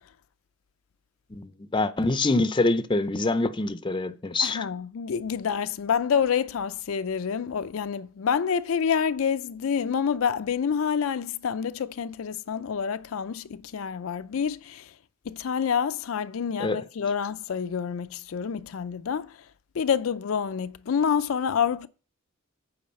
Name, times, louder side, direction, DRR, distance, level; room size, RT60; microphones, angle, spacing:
voice 1, 1.3-4.7 16.6-16.8, left 2 dB, 20° left, 0.5 m, -25 dB
voice 2, 4.4-14.9 15.3-19.4 19.7-21.9, left 7 dB, 75° left, 0.4 m, -27 dB
8.6 x 4.9 x 6.4 m
head